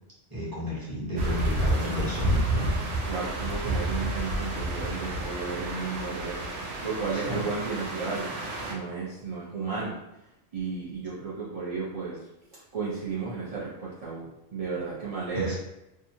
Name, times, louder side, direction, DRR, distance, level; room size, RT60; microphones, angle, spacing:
voice 1, 0.3-2.7 7.1-7.4 15.3-15.6, left 1 dB, 20° right, -7 dB, 0.9 m, -32 dB
sound 1, 1.2-8.7, right 1 dB, 75° right, 0.9 m, -30 dB
voice 2, 3.0-6.3 6.8-8.4 8.7-10.0 10.5-12.3 12.7-15.6, right 4 dB, 55° right, -7 dB, 0.4 m, -33 dB
2.8 x 2.3 x 2.6 m, 0.92 s
omnidirectional pair, 1.2 m